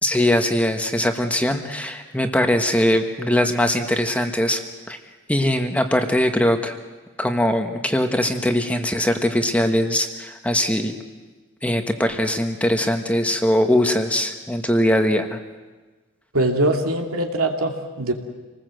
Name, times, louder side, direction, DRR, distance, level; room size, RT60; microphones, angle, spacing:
voice 1, 0.0-4.6 4.9-5.0 5.3-6.8 7.2-11.0 11.6-15.4, left 1 dB, 5° left, 5 dB, 1.3 m, -21 dB
voice 2, 16.3-18.1, right 1 dB, 90° right, 2 dB, 2.8 m, -22 dB
27.5 x 19.5 x 7.8 m, 1.3 s
head